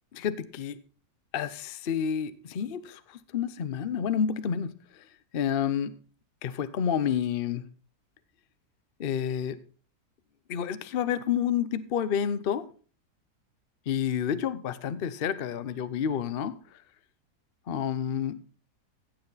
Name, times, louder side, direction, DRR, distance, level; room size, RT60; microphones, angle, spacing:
voice 1, 0.1-0.8 1.3-3.0 3.3-4.7 5.3-5.9 6.4-7.6 9.0-9.6 10.5-12.6 13.9-16.5 17.7-18.4, left 8 dB, 50° left, 13 dB, 0.7 m, -29 dB
15.5 x 8.0 x 4.0 m, 0.40 s
omnidirectional pair, 1.7 m